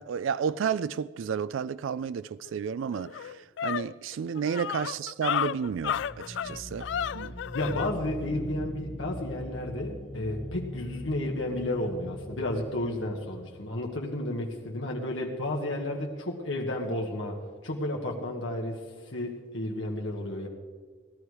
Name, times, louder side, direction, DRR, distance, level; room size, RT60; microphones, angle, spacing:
voice 1, 0.0-6.9 7.1-7.3, right 7 dB, 90° right, 0.3 m, -32 dB
sound 1, 2.5-2.6 2.9-7.9, left 8 dB, 70° left, 0.3 m, -32 dB
sound 2, 5.6-14.3, left 1 dB, 40° left, 1.1 m, -41 dB
voice 2, 7.5-20.5, left 1 dB, 90° left, 1.4 m, -32 dB
16.5 x 12.0 x 4.8 m
head